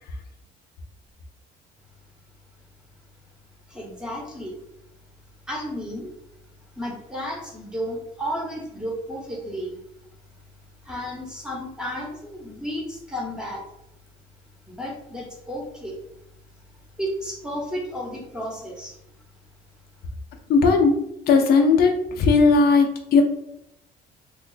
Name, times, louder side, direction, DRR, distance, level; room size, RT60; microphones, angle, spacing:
voice 1, 3.7-4.6 5.5-6.1 6.8-9.8 10.8-13.6 14.7-16.0 17.0-19.0, equal, 5° right, -1 dB, 1.0 m, -32 dB
voice 2, 20.5-20.9 21.3-21.9 22.2-23.2, left 4 dB, 70° left, 3 dB, 0.6 m, -17 dB
3.1 x 2.3 x 3.9 m, 0.82 s
cardioid pair, 110°, 17 cm